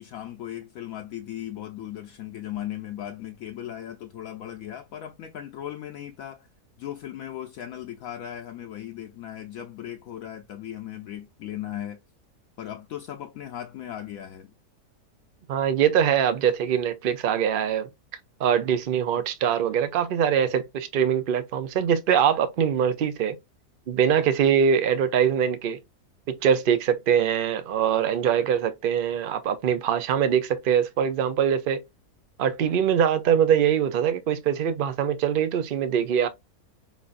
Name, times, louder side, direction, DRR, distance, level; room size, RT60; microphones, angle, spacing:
voice 1, 0.0-6.5 6.8-12.0 12.6-14.5, left 11 dB, 70° left, 0.9 m, -37 dB
voice 2, 15.5-17.9 18.4-23.4 23.9-25.8 26.3-31.8 32.4-36.3, right 8 dB, 90° right, 0.4 m, -23 dB
5.2 x 2.6 x 2.4 m
omnidirectional pair, 1.7 m